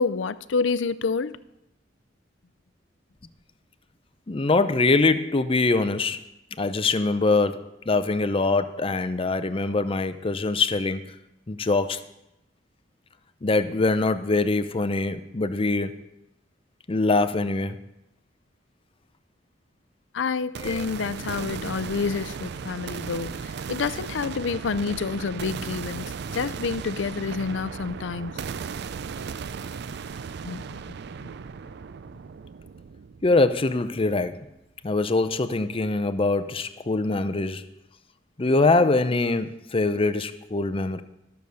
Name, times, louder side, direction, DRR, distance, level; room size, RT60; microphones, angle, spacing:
voice 1, 0.0-1.4 20.1-26.1 26.3-28.4 30.4-30.7 31.2-31.3, left 4 dB, 75° left, 0.5 m, -28 dB
voice 2, 4.3-6.2 6.6-11.0 11.5-12.0 13.4-16.0 16.9-17.8 20.6-20.9 33.2-34.5 34.8-37.6 38.4-41.0, left 3 dB, 30° left, 0.6 m, -23 dB
sound 1, 20.5-34.5, right 6 dB, 60° right, 0.4 m, -36 dB
13.0 x 6.9 x 6.4 m
head